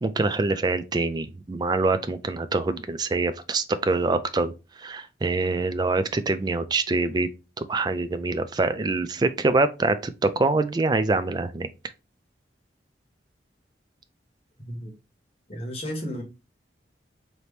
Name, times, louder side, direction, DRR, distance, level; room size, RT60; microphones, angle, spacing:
voice 1, 0.0-4.5 4.8-7.3 7.6-10.0 10.2-11.7, right 3 dB, 25° right, 0.4 m, -25 dB
voice 2, 15.5-16.2, equal, 35° left, 1.4 m, -33 dB
4.2 x 2.9 x 3.3 m
head